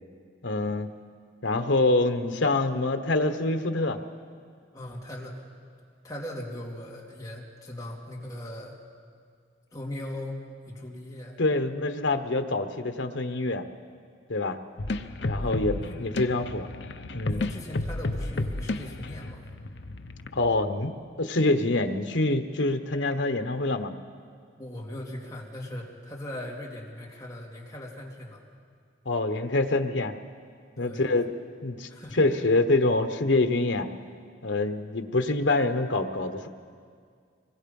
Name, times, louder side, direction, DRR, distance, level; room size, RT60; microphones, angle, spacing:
voice 1, 0.4-0.9 1.4-4.0 11.4-13.6 14.3-14.6 15.2-16.7 17.1-17.4 20.3-20.9 21.2-23.9 29.0-30.1 30.8-31.3 31.6-31.9 32.2-33.9 34.4-36.5, left 2 dB, 90° left, 8 dB, 1.2 m, -25 dB
voice 2, 4.7-5.4 6.0-8.8 9.7-11.4 15.4-15.5 15.8-16.0 17.3-19.5 24.6-28.4 30.8-31.1 31.9-32.2, left 1 dB, 20° left, -3 dB, 2.9 m, -39 dB
sound 1, 14.8-20.4, left 2 dB, 70° left, 0.8 m, -32 dB
24.5 x 21.5 x 5.5 m, 2.1 s
head